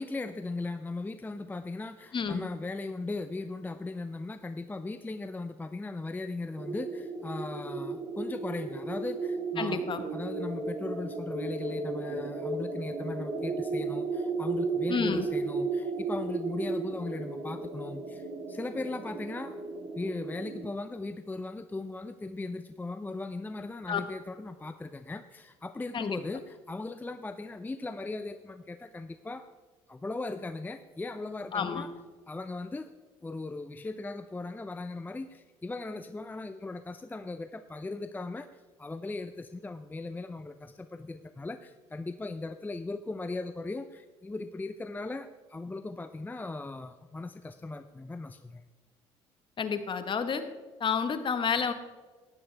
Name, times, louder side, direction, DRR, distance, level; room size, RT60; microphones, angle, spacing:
voice 1, 0.0-9.8 10.1-19.6 20.0-29.5 29.9-31.9 32.3-32.9 33.2-48.6, left 3 dB, 15° left, 10 dB, 0.5 m, -38 dB
voice 2, 2.1-2.5 9.6-10.0 14.9-15.2 23.9-24.0 25.9-26.2 31.5-31.9 49.6-50.4 50.8-51.7, left 6 dB, 40° left, 9 dB, 1.2 m, -30 dB
sound 1, 6.6-20.7, right 3 dB, 50° right, 1.8 m, -34 dB
14.0 x 10.5 x 3.4 m, 1.4 s
supercardioid pair, 75°, 13 cm